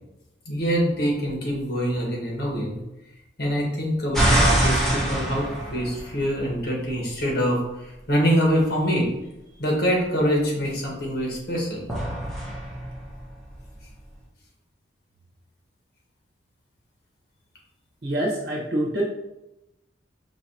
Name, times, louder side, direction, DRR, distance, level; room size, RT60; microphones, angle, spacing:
voice 1, 0.4-2.8 3.4-9.1 9.6-11.9, equal, 65° left, -2 dB, 1.5 m, -25 dB
sound 1, 4.1-6.6 11.9-13.9, right 1 dB, 5° left, 0.9 m, -24 dB
voice 2, 18.0-19.0, right 1 dB, 65° right, -3 dB, 1.2 m, -25 dB
5.7 x 3.0 x 2.8 m, 0.93 s
head